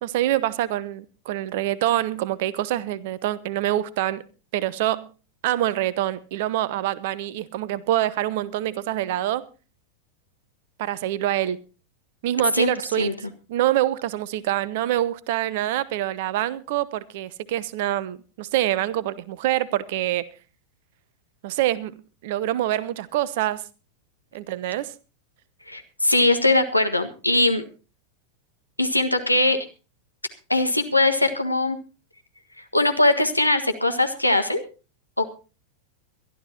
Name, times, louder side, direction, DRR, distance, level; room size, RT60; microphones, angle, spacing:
voice 1, 0.0-4.2 4.5-5.1 5.4-9.4 10.8-11.6 12.2-13.2 13.5-20.2 21.4-22.0 22.2-23.6 24.3-24.9, right 13 dB, 50° right, 0.9 m, -25 dB
voice 2, 25.7-27.6 28.8-29.6 30.5-31.8 32.7-34.6 35.2-35.3, left 2 dB, 85° left, 1.6 m, -21 dB
23.0 x 12.0 x 2.8 m
figure-of-eight pair, 90°, 0 cm